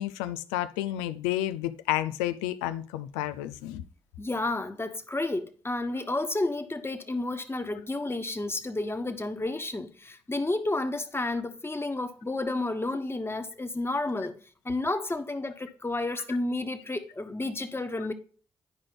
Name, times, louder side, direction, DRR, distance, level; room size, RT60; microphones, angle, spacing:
voice 1, 0.0-3.8, left 13 dB, 90° left, 0.4 m, -31 dB
voice 2, 4.2-14.4 14.6-18.1, left 2 dB, 20° left, 1.2 m, -31 dB
10.5 x 5.0 x 3.8 m
hypercardioid pair, 40°, 11 cm